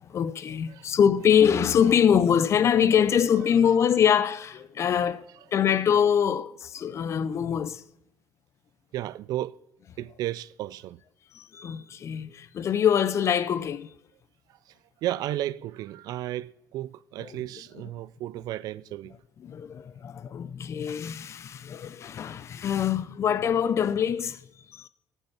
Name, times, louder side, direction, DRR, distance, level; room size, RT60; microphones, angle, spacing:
voice 1, 0.1-7.8 11.3-13.9 17.2-17.3 19.4-24.4 24.7-24.9, left 8 dB, 40° left, 0.5 m, -24 dB
voice 2, 8.9-9.6 10.0-11.0 15.0-19.2, right 14 dB, 65° right, 0.3 m, -33 dB
13.5 x 5.5 x 7.2 m
cardioid pair, 115°, 7 cm